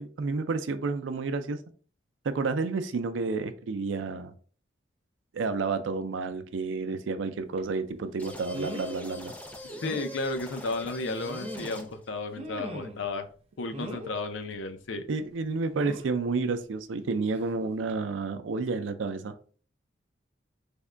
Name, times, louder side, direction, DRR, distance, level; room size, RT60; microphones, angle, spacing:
voice 1, 0.0-1.6 2.2-4.3 5.3-9.3 15.1-19.3, right 4 dB, 85° right, 0.4 m, -30 dB
sound 1, 7.6-7.7 8.5-9.0 9.4-9.5 9.8-10.1 11.0-11.9 12.4-13.1 13.7-14.2 15.7-16.2 17.3-17.5 17.9-18.0, equal, 35° right, 0.6 m, -40 dB
sound 2, 8.2-12.1, left 1 dB, 10° left, 0.4 m, -43 dB
voice 2, 9.8-13.3 13.6-15.0, left 3 dB, 85° left, 0.5 m, -33 dB
3.4 x 2.2 x 3.6 m
head